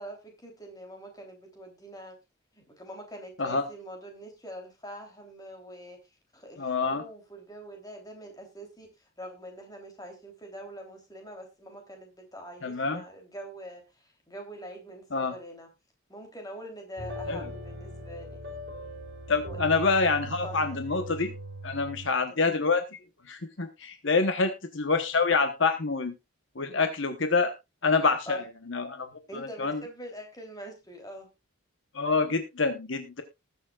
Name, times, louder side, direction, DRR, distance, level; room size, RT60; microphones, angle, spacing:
voice 1, 0.0-2.2 2.5-6.0 6.3-15.7 16.1-18.4 19.5-19.6 20.4-20.8 22.1-22.4 28.2-28.4 29.3-31.3, equal, 15° left, 3 dB, 3.3 m, -44 dB
voice 2, 6.6-7.0 12.6-13.0 15.1-15.3 17.3-17.4 19.3-21.3 21.6-22.8 23.3-26.1 26.6-27.5 27.8-28.4 28.7-29.8 31.9-33.2, left 4 dB, 60° left, 7 dB, 1.1 m, -26 dB
sound 1, 17.0-22.1, right 1 dB, 50° right, 4.7 m, -40 dB
20.0 x 7.0 x 2.4 m, 0.23 s
head